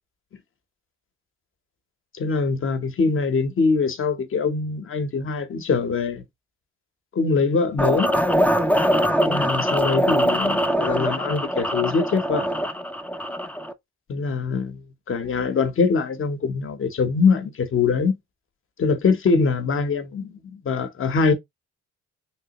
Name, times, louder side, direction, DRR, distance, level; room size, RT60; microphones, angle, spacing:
voice 1, 2.1-6.2 7.1-8.2 9.3-12.5 14.1-18.2 18.8-21.3, left 4 dB, 45° left, 0.9 m, -23 dB
sound 1, 7.8-13.7, equal, 5° left, 0.4 m, -22 dB
3.4 x 2.8 x 2.9 m
cardioid pair, 90°, 30 cm